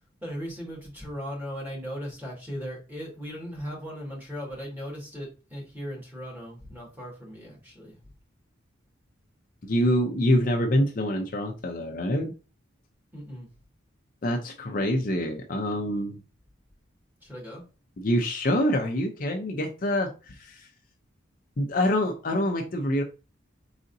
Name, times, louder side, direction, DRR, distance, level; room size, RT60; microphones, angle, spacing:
voice 1, 0.2-8.0 13.1-13.5 17.2-17.6, equal, 10° right, -3 dB, 1.8 m, -38 dB
voice 2, 9.6-12.3 14.2-16.2 18.0-20.7 21.6-23.0, left 1 dB, 45° left, 3 dB, 0.6 m, -26 dB
4.9 x 3.8 x 2.7 m, 0.32 s
head